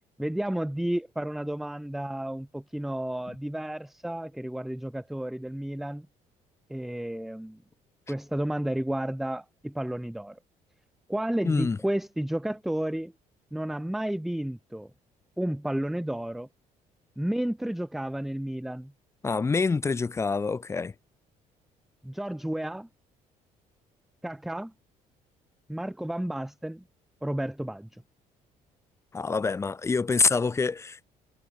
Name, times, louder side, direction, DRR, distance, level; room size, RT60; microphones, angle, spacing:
voice 1, 0.2-6.1 6.7-7.6 8.1-10.4 11.1-13.1 13.5-14.9 15.4-16.5 17.2-18.9 22.0-22.9 24.2-24.7 25.7-26.8 27.2-28.0, right 1 dB, ahead, 0.6 m, -32 dB
voice 2, 11.4-11.8 19.2-20.9 29.1-31.0, left 4 dB, 20° left, 2.2 m, -26 dB
cardioid pair, 150°, 14 cm